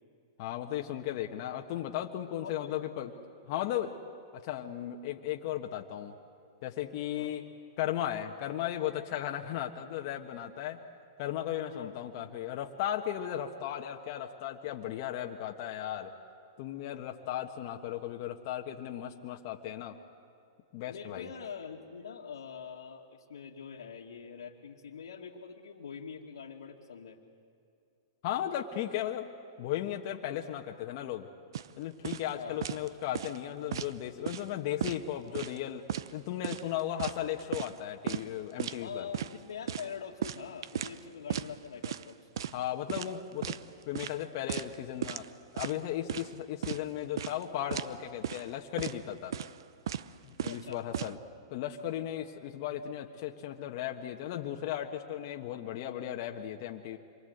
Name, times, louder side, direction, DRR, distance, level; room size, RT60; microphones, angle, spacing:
voice 1, 0.4-3.1 3.5-4.0 4.3-6.1 6.6-7.4 7.8-10.8 11.2-16.1 16.6-19.9 20.7-21.3 28.2-29.3 29.6-31.3 31.8-39.1 42.5-43.6 43.9-45.2 45.5-49.3 50.2-51.2 51.5-57.0, left 11 dB, 50° left, 2 dB, 1.4 m, -36 dB
voice 2, 2.4-2.8 7.1-7.4 11.7-12.0 20.8-27.2 32.3-32.6 38.8-42.3 50.5-50.8, left 6 dB, 85° left, -3 dB, 2.1 m, -44 dB
sound 1, 31.5-31.7 32.0-32.3 32.6-32.9 33.1-33.9 34.3-34.5 34.8-35.6 35.9-36.1 36.4-37.8 38.1-38.2 38.6-38.8 39.1-39.3 39.7-41.0 41.3-41.5 41.8-42.1 42.4-42.6 42.9-43.6 43.9-44.2 44.5-44.7 45.0-45.3 45.6-46.3 46.6-46.8 47.2-47.4 47.7-47.9 48.2-48.5 48.8-49.0 49.3-49.6 49.9-50.1 50.4-51.1, right 10 dB, 75° right, 0.8 m, -36 dB
26.5 x 23.0 x 8.0 m, 2.5 s
hypercardioid pair, 130°, 2 cm